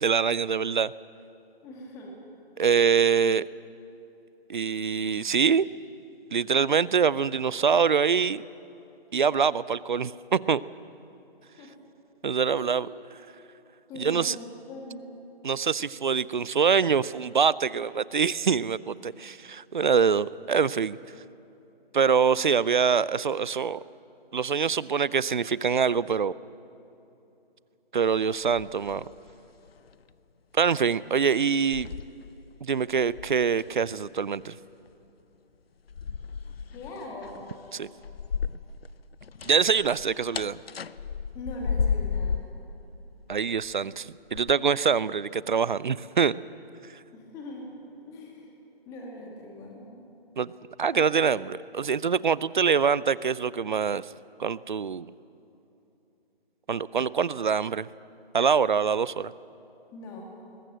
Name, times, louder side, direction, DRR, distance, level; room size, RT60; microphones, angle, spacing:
voice 1, 0.0-0.9 2.6-3.4 4.5-5.7 6.3-8.4 9.1-10.6 12.2-12.9 14.0-14.4 15.4-21.0 21.9-23.8 24.3-26.3 27.9-29.0 30.5-31.9 32.6-34.6 37.7-37.9 39.5-40.6 43.3-46.3 50.4-50.5 50.8-54.1 54.4-55.1 56.7-57.9 58.3-59.3, right 6 dB, 50° right, 20 dB, 0.5 m, -24 dB
voice 2, 1.6-2.1 11.6-11.7 12.5-12.7 13.9-15.0 36.7-37.4 41.3-42.4 47.1-48.5 48.8-50.0 50.9-51.0 59.9-60.3, left 1 dB, 10° left, 0 dB, 2.2 m, -41 dB
sound 1, 28.4-29.4 29.7-29.9 30.8-30.9 31.5-32.6 32.9-33.8 35.9-38.9 39.1-42.6 43.3-43.7 44.3-44.5, left 6 dB, 70° left, 0.7 m, -33 dB
22.0 x 19.0 x 7.6 m, 2.9 s
figure-of-eight pair, 160°, 31 cm